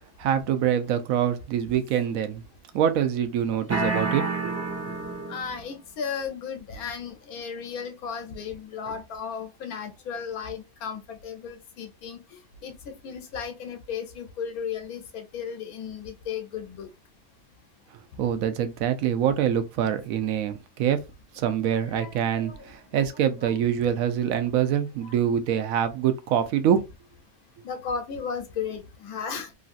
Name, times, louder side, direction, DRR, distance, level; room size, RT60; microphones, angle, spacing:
voice 1, 0.2-2.4 2.7-4.6 18.2-21.0 21.3-26.8, right 9 dB, 75° right, 1.0 m, -25 dB
sound 1, 3.7-5.6, right 3 dB, 15° right, 0.6 m, -29 dB
voice 2, 5.3-12.2 12.6-16.9 21.9-22.7 23.4-23.6 27.6-29.5, left 6 dB, 85° left, 1.2 m, -35 dB
3.1 x 2.6 x 2.4 m
omnidirectional pair, 1.5 m